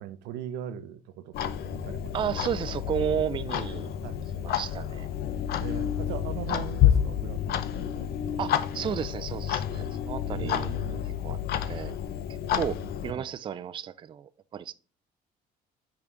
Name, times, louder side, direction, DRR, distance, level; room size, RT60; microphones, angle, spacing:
voice 1, 0.0-2.1 4.0-4.2 5.6-8.1 8.4-8.5 10.3-11.1 13.1-13.3, right 10 dB, 90° right, 0.7 m, -39 dB
Clock, 1.3-13.1, left 10 dB, 70° left, 0.6 m, -29 dB
voice 2, 2.1-3.9 4.3-5.1 8.4-10.8 11.2-11.4 11.7-11.9 12.6-14.7, right 9 dB, 30° right, 0.3 m, -33 dB
5.4 x 3.8 x 4.5 m
cardioid pair, 110°, 17 cm